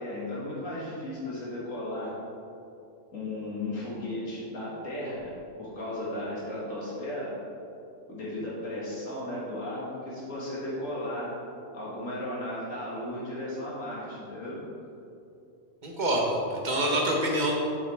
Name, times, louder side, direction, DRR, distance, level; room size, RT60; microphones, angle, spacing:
voice 1, 0.0-2.1 3.1-7.3 8.1-11.4 11.7-14.6, left 1 dB, 85° left, -7 dB, 2.6 m, -35 dB
voice 2, 15.8-17.5, right 1 dB, 35° right, -1 dB, 1.3 m, -26 dB
7.9 x 7.1 x 3.6 m, 2.6 s
omnidirectional pair, 1.3 m